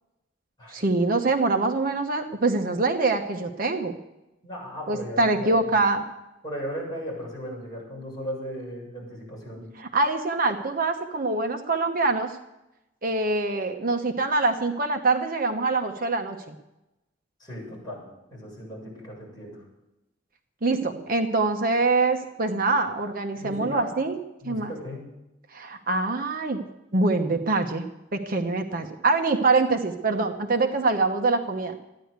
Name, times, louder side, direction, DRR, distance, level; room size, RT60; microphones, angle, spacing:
voice 1, 0.7-4.0 4.9-6.0 9.8-12.4 13.0-16.5 20.6-24.2 24.4-24.7 25.5-26.6 26.9-27.8 28.1-31.8, right 3 dB, 50° right, 4 dB, 1.1 m, -24 dB
voice 2, 4.4-5.6 6.4-9.8 17.4-18.0 18.3-19.6 23.3-23.9 24.4-25.1, equal, 20° left, -4 dB, 7.3 m, -36 dB
14.5 x 10.5 x 8.2 m, 0.93 s
head